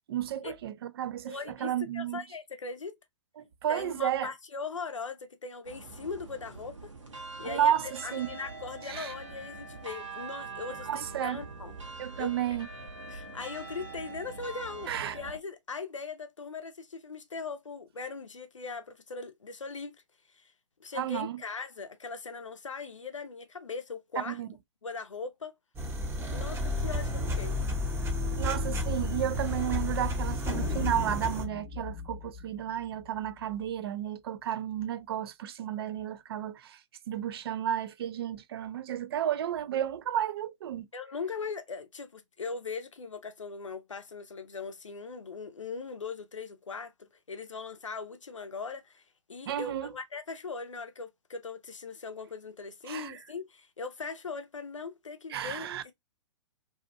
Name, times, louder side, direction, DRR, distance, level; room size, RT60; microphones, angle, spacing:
voice 1, 0.1-1.4 1.6-2.2 3.4-4.3 7.4-8.3 8.9-9.1 10.9-11.4 12.0-12.7 14.9-15.2 21.0-21.4 24.2-24.5 28.4-36.8 37.1-40.9 49.5-49.9 52.9-53.2 55.3-55.8, right 10 dB, 55° right, 0.4 m, -32 dB
voice 2, 1.3-2.9 3.7-6.9 7.4-11.8 12.2-12.3 13.1-20.0 20.3-20.5 20.8-24.4 24.8-25.5 26.3-27.6 40.9-49.0 49.3-55.9, left 4 dB, 85° left, 0.6 m, -40 dB
sound 1, 5.6-15.4, right 3 dB, 80° right, 0.9 m, -43 dB
sound 2, 25.8-31.4, left 1 dB, 15° right, 0.7 m, -31 dB
sound 3, 30.5-33.6, left 4 dB, 20° left, 0.7 m, -38 dB
2.7 x 2.4 x 2.4 m
figure-of-eight pair, 115°, 16 cm